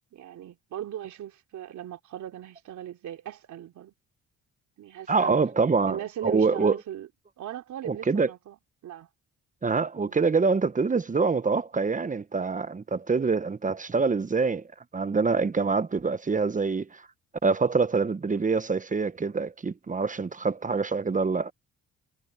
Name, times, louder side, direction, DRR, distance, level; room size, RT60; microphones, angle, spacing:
voice 1, 0.1-3.9 4.8-5.4 5.9-7.1 7.4-8.6 8.8-9.1 10.1-10.2, right 11 dB, 70° right, 3.3 m, -38 dB
voice 2, 5.1-6.8 7.9-8.3 9.6-14.6 14.9-17.0 17.4-21.5, right 4 dB, 25° right, 1.0 m, -25 dB
cardioid pair, 90°, 30 cm